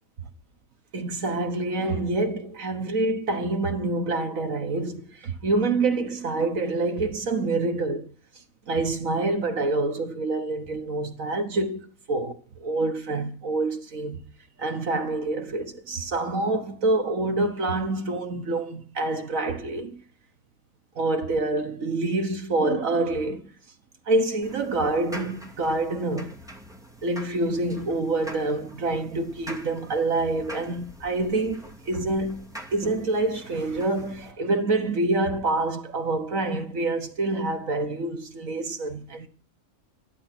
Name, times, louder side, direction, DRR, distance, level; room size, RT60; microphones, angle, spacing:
voice 1, 0.9-8.1 8.7-12.3 12.6-14.2 14.6-20.0 21.0-23.5 24.1-26.4 27.0-39.3, right 2 dB, 65° right, 1.7 m, -26 dB
sound 1, 24.4-34.3, equal, ahead, 2.5 m, -44 dB
14.0 x 12.0 x 6.0 m
omnidirectional pair, 1.5 m